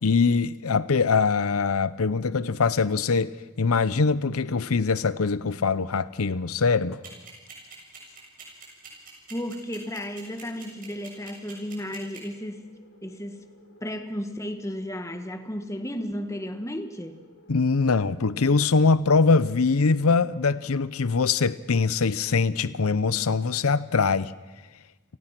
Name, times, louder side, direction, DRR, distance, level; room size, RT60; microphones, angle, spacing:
voice 1, 0.0-7.0 17.5-24.3, left 4 dB, 90° left, 0.7 m, -23 dB
sound 1, 7.0-12.2, right 7 dB, 40° right, 7.3 m, -44 dB
voice 2, 9.3-12.7 13.0-13.4 13.8-17.2, equal, 15° left, 1.6 m, -34 dB
sound 2, 10.0-18.9, left 1 dB, 65° left, 5.5 m, -56 dB
29.5 x 19.0 x 6.0 m
head